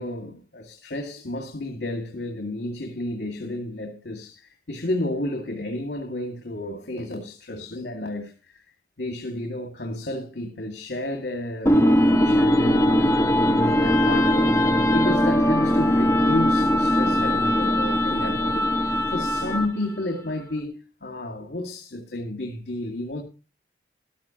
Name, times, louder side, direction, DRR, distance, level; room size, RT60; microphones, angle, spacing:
voice 1, 0.0-8.6 9.0-14.6 14.9-23.2, left 1 dB, 75° left, 2.2 m, -31 dB
sound 1, 11.7-19.8, left 1 dB, 15° left, 1.0 m, -20 dB
14.0 x 12.5 x 2.9 m
head